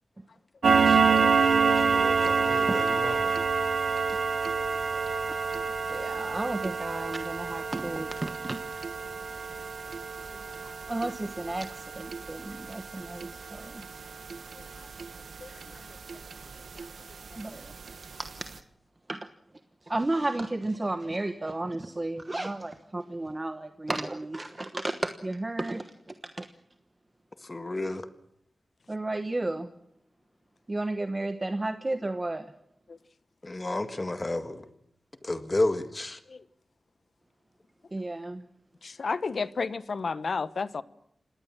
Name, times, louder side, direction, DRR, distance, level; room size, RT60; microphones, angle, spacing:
sound 1, 0.6-15.7 16.1-16.3 16.8-16.9 17.3-17.4 17.9-18.0 18.3-18.4, right 5 dB, 90° right, 1.6 m, -27 dB
voice 1, 0.9-3.3 27.5-28.0 33.4-34.6 35.2-36.2, left 2 dB, 25° left, 1.8 m, -32 dB
voice 2, 5.9-8.6 10.9-13.8 17.4-17.7 18.2-18.5 19.1-19.2 19.9-25.9 26.4-26.5 28.9-29.7 30.7-32.4 37.9-38.4, right 2 dB, 25° right, 1.1 m, -33 dB
voice 3, 38.8-40.8, left 4 dB, 65° left, 1.0 m, -31 dB
27.0 x 19.0 x 7.4 m
wide cardioid pair, 120°, 0 cm